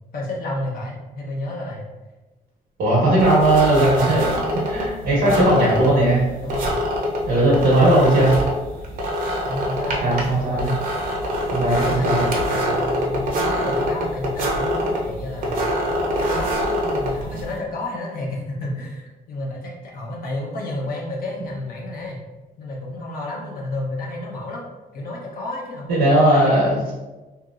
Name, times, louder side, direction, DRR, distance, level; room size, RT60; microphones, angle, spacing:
voice 1, 0.1-1.9 5.2-5.7 6.4-6.8 7.4-8.4 9.4-10.9 11.7-15.7 16.2-22.2 22.6-24.6 24.9-26.1 26.3-26.5, left 1 dB, 65° left, -3 dB, 0.8 m, -31 dB
voice 2, 2.8-6.2 7.3-8.3 10.0-10.7 11.5-12.2 25.9-26.9, right 1 dB, 85° right, -6 dB, 1.1 m, -18 dB
sound 1, 3.2-17.6, equal, 60° right, 0.7 m, -25 dB
2.9 x 2.9 x 2.4 m, 1.1 s
cardioid pair, 125°, 16 cm